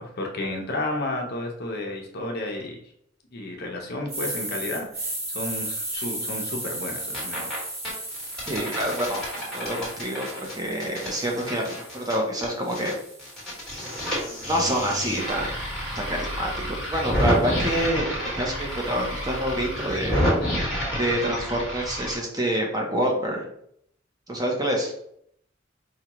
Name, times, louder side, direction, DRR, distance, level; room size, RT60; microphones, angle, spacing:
voice 1, 0.0-2.8 3.3-7.6, left 2 dB, 55° left, 2 dB, 0.7 m, -32 dB
sound 1, 4.1-12.1 12.6-16.8, right 1 dB, 35° right, 1.2 m, -36 dB
sound 2, 7.1-7.6 7.9-12.9 13.2-22.2, equal, 5° left, 1.4 m, -29 dB
voice 2, 8.5-12.9 14.5-15.5 15.9-20.2 21.0-23.4 24.3-24.9, right 1 dB, 20° right, 0 dB, 0.7 m, -27 dB
4.9 x 2.3 x 2.9 m, 0.70 s
head